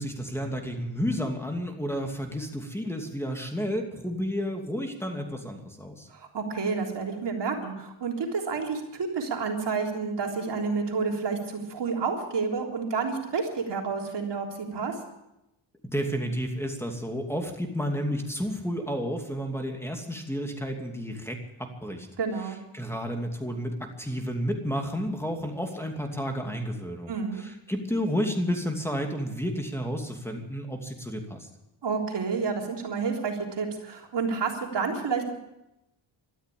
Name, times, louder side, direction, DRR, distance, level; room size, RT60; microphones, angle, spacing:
voice 1, 0.0-6.1 15.8-22.1 22.7-31.5, equal, 5° left, 3 dB, 2.7 m, -31 dB
voice 2, 6.1-14.9 22.2-22.6 27.1-27.4 31.8-35.3, right 5 dB, 60° right, 1 dB, 3.6 m, -30 dB
13.0 x 13.0 x 8.6 m, 0.89 s
cardioid pair, 75°, 48 cm